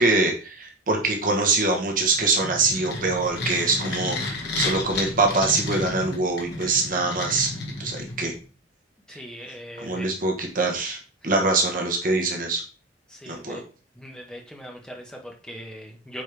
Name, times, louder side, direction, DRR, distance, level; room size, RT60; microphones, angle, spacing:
voice 1, 0.0-7.5 7.8-8.3 9.1-9.2 9.8-11.0 11.2-12.6 13.2-13.6, right 3 dB, 45° right, 1 dB, 1.4 m, -24 dB
sound 1, 2.1-8.4, left 2 dB, 60° left, 2.0 m, -32 dB
voice 2, 9.1-10.1 11.2-11.3 13.1-13.6 13.9-16.2, equal, 5° left, 0 dB, 1.5 m, -40 dB
8.4 x 4.4 x 3.5 m, 0.36 s
head